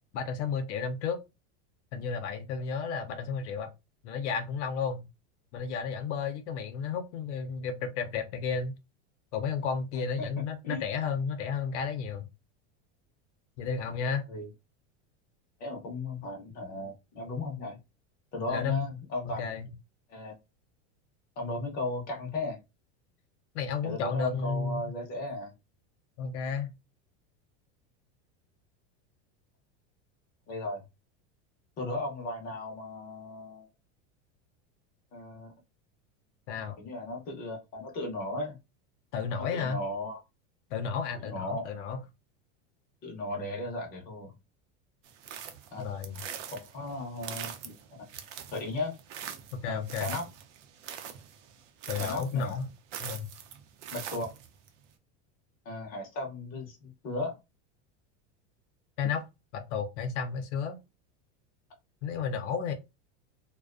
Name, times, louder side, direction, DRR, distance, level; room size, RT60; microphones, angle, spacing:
voice 1, 0.1-1.2 1.9-3.7 4.0-5.0 5.5-8.7 9.3-12.3 13.6-14.3 18.5-18.9 19.3-19.7 23.5-24.8 26.2-26.7 36.5-36.8 39.1-39.8 40.7-42.0 45.8-46.2 49.5-50.1 51.9-52.6 53.0-53.3 59.0-59.3 59.5-60.8 62.0-62.7, left 6 dB, 75° left, 0.6 m, -32 dB
voice 2, 9.9-10.3 10.6-10.8 14.3-14.5 15.6-17.8 18.3-19.6 20.1-20.3 21.4-22.6 23.8-25.5 30.5-30.8 31.8-33.7 35.1-35.5 36.8-38.6 39.4-40.2 41.2-41.7 43.0-44.3 45.7-45.9 46.5-48.1 48.5-49.0 49.7-50.3 52.0-52.6 53.9-54.3 55.6-57.3, left 2 dB, 25° left, 0.6 m, -36 dB
sound 1, 45.0-54.7, right 9 dB, 80° right, 0.6 m, -43 dB
2.4 x 2.1 x 2.4 m
supercardioid pair, 170°, 35 cm